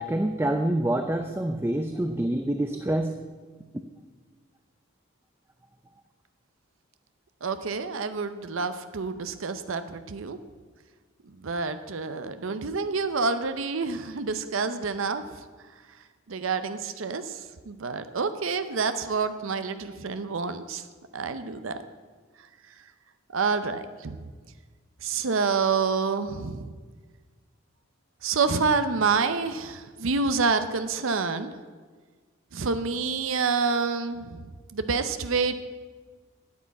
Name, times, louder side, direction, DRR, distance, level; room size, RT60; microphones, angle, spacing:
voice 1, 0.0-3.2, right 1 dB, 10° right, 7 dB, 0.4 m, -26 dB
voice 2, 7.4-10.4 11.4-15.2 16.3-17.4 17.7-20.8 21.1-21.8 23.3-24.2 25.0-26.7 28.2-31.5 32.5-34.4 34.7-35.6, right 4 dB, 70° right, 10 dB, 0.7 m, -28 dB
9.5 x 8.7 x 8.3 m, 1.5 s
head